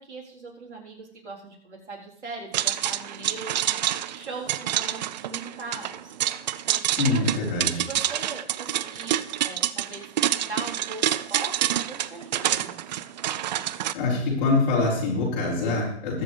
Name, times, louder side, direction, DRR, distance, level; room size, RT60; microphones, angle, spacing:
voice 1, 0.0-6.1 6.7-7.3 7.8-11.0 11.3-12.8, right 3 dB, 75° right, -2 dB, 3.8 m, -40 dB
sound 1, 2.5-13.9, right 12 dB, 40° right, 0.5 m, -27 dB
voice 2, 6.8-7.9 13.9-16.2, left 3 dB, 45° left, -8 dB, 5.2 m, -25 dB
21.0 x 7.5 x 3.3 m, 0.71 s
hypercardioid pair, 130°, 34 cm